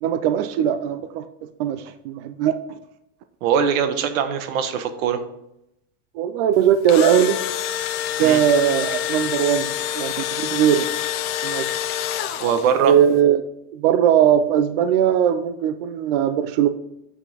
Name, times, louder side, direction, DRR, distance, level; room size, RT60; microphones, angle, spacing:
voice 1, 0.0-2.8 6.1-7.4 8.2-10.9 11.4-11.7 12.8-13.4 13.7-16.7, right 9 dB, 45° right, 10 dB, 0.5 m, -19 dB
voice 2, 3.4-5.2 8.2-8.4 12.4-12.9, right 7 dB, 85° right, 9 dB, 1.2 m, -21 dB
Engine / Drill, 6.6-12.9, left 11 dB, 60° left, 0.8 m, -27 dB
8.2 x 5.5 x 4.0 m, 0.82 s
supercardioid pair, 170°, 40 cm